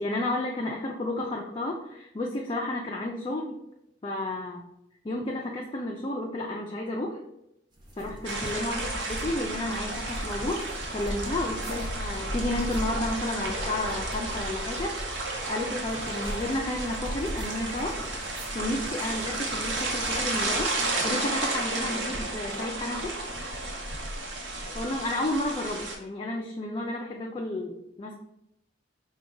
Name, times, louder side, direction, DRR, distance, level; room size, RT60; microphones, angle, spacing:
voice 1, 0.0-3.6 4.0-4.7 5.0-7.2 8.0-10.6 10.9-15.0 15.5-18.0 18.5-20.7 21.0-23.1 24.7-28.2, left 1 dB, 25° left, -1 dB, 0.4 m, -32 dB
sound 1, 7.7-21.2, equal, 25° right, 0.6 m, -42 dB
sound 2, 8.2-26.0, right 2 dB, 75° right, 0.9 m, -32 dB
4.7 x 2.3 x 3.7 m, 0.82 s
head